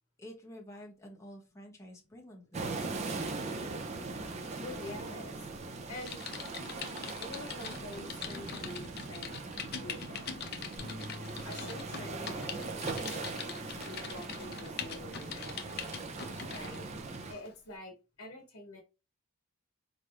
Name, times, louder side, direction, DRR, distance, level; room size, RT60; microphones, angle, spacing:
voice 1, 0.2-2.7, equal, 15° left, 0.8 m, -49 dB
sound 1, 2.5-17.3, right 3 dB, 30° right, 0.4 m, -40 dB
voice 2, 4.6-6.2 7.2-9.4 9.6-10.4 11.0-15.6 16.5-16.9 17.3-18.8, left 1 dB, 80° left, 1.0 m, -47 dB
Typing, 6.0-16.8 17.3-17.5, left 7 dB, 45° left, 0.5 m, -43 dB
Bass guitar, 10.8-17.0, equal, 45° right, 2.2 m, -50 dB
4.0 x 3.3 x 2.4 m
head